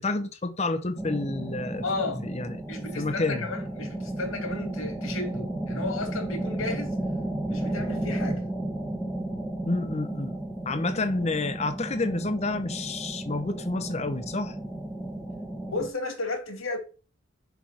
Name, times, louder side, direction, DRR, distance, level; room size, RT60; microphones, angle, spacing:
voice 1, 0.0-1.8 2.2-2.6 3.0-3.5 9.7-10.4 10.7-14.6, left 2 dB, 30° left, 0.8 m, -29 dB
sound 1, 1.0-15.9, right 1 dB, 5° left, 1.7 m, -33 dB
voice 2, 1.8-2.2 2.7-7.0 7.5-8.5 15.7-16.8, left 3 dB, 85° left, 2.3 m, -33 dB
5.8 x 5.8 x 6.2 m
head